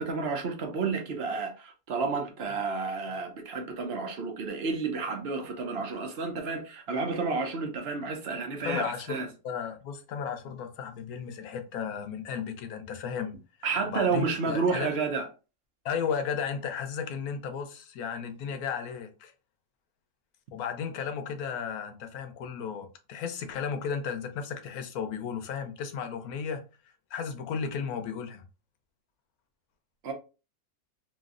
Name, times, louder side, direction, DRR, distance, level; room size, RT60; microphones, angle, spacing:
voice 1, 0.0-9.3 13.6-15.3 30.0-30.1, right 4 dB, 55° right, 0.8 m, -31 dB
voice 2, 8.6-9.2 9.4-13.4 13.9-15.0 15.8-19.3 20.5-26.6 27.1-28.4, left 7 dB, 90° left, 1.1 m, -34 dB
3.1 x 2.9 x 2.4 m
omnidirectional pair, 1.5 m